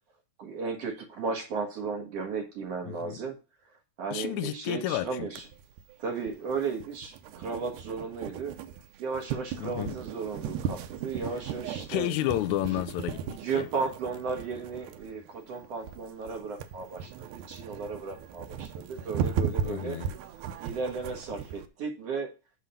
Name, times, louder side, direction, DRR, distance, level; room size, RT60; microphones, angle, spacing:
voice 1, 0.4-3.4 4.0-5.5 6.0-8.6 9.0-12.1 12.7-12.8 13.3-20.0 20.6-22.3, right 5 dB, 55° right, 2.4 m, -35 dB
voice 2, 2.9-3.2 4.1-5.3 9.6-10.0 11.9-13.2 13.5-13.7 19.7-20.1, left 14 dB, 80° left, 1.9 m, -31 dB
sound 1, 5.4-21.7, right 8 dB, 85° right, 2.3 m, -37 dB
8.8 x 4.1 x 5.6 m
omnidirectional pair, 3.5 m